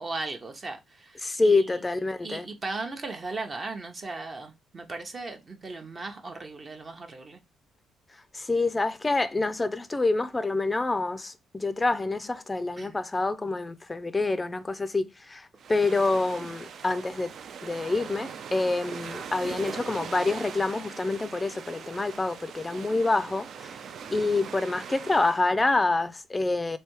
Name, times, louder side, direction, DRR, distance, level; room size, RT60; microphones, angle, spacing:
voice 1, 0.0-1.7 2.2-7.4 12.8-12.9, right 3 dB, 35° right, 0.8 m, -37 dB
voice 2, 1.2-2.5 8.3-17.3 17.6-23.7 24.1-26.8, left 3 dB, 20° left, 0.4 m, -27 dB
sound 1, 15.6-25.6, right 7 dB, 65° right, 0.4 m, -41 dB
3.3 x 2.7 x 4.5 m
cardioid pair, 90°, 0 cm